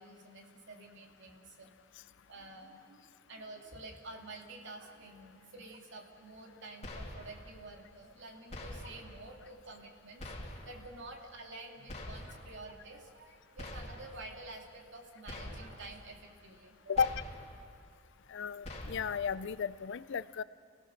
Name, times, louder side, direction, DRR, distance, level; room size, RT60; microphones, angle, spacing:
voice 1, 0.0-1.7 2.3-10.3 10.6-17.0, right 2 dB, 60° right, 1 dB, 2.8 m, -49 dB
sound 1, 6.8-7.5 8.5-9.2 10.2-10.9 11.9-12.6 13.6-14.3 15.3-16.0 16.9-17.6 18.6-19.3, left 1 dB, 35° left, 2.8 m, -45 dB
voice 2, 18.3-20.4, left 6 dB, 60° left, 16 dB, 0.5 m, -33 dB
29.5 x 17.0 x 6.5 m, 2.3 s
head